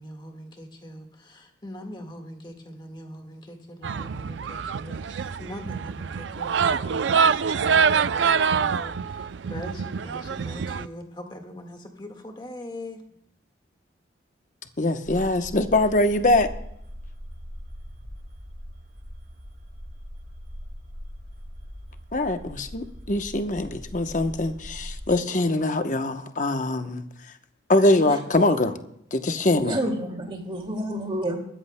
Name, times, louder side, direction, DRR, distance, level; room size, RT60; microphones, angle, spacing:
voice 1, 0.0-13.2, left 1 dB, 25° left, 1.6 m, -42 dB
sound 1, 3.8-10.9, right 6 dB, 75° right, 0.4 m, -25 dB
voice 2, 14.8-16.5 22.1-27.1 27.7-28.8 29.1-29.8, left 2 dB, 45° left, 0.9 m, -23 dB
sound 2, 15.1-25.1, equal, 55° right, 3.6 m, -41 dB
voice 3, 29.4-31.4, right 1 dB, 25° right, 2.3 m, -30 dB
21.0 x 14.0 x 2.2 m
head